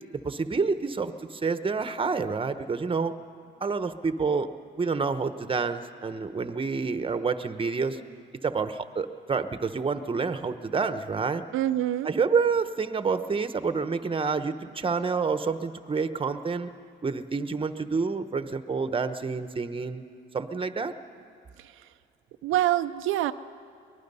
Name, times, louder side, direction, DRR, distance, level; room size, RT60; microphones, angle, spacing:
voice 1, 0.2-3.1 3.6-4.5 4.8-8.0 8.4-11.4 12.0-16.7 17.0-20.0 20.3-20.9, right 4 dB, 25° right, 10 dB, 1.0 m, -28 dB
voice 2, 11.5-12.1 21.6-21.9 22.4-23.3, right 13 dB, 90° right, 9 dB, 0.5 m, -26 dB
24.5 x 19.5 x 5.5 m, 2.5 s
cardioid pair, 90°, 20 cm